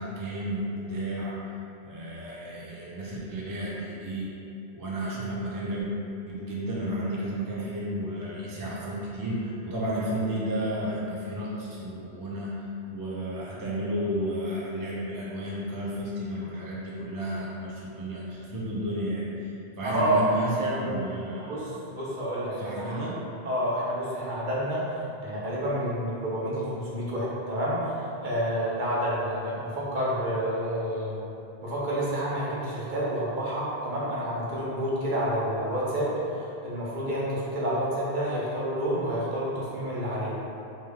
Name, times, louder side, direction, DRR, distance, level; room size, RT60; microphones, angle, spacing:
voice 1, 0.0-1.4 1.8-4.3 4.7-5.9 6.3-12.6 12.9-21.6 22.6-23.2, right 1 dB, 35° right, -7 dB, 0.3 m, -32 dB
voice 2, 19.8-20.2 21.4-23.0 23.4-31.2 31.6-40.3, equal, 55° right, -7 dB, 0.8 m, -29 dB
3.1 x 2.2 x 3.4 m, 2.7 s
omnidirectional pair, 1.1 m